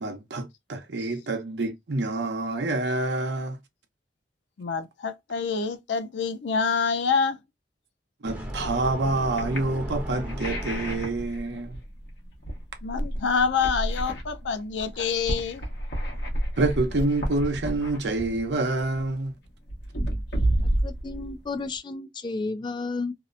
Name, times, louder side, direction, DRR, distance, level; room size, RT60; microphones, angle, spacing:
voice 1, 0.0-3.6 8.2-11.8 15.0-15.4 16.6-19.3, right 2 dB, 75° right, 0.7 m, -27 dB
voice 2, 4.6-7.4 12.8-15.6, left 5 dB, 90° left, 0.5 m, -26 dB
sound 1, 8.3-21.7, right 1 dB, 65° left, 1.0 m, -31 dB
sound 2, 8.3-11.4, equal, 10° right, 0.8 m, -36 dB
voice 3, 20.8-23.1, left 3 dB, 25° left, 0.3 m, -32 dB
2.7 x 2.0 x 2.4 m
head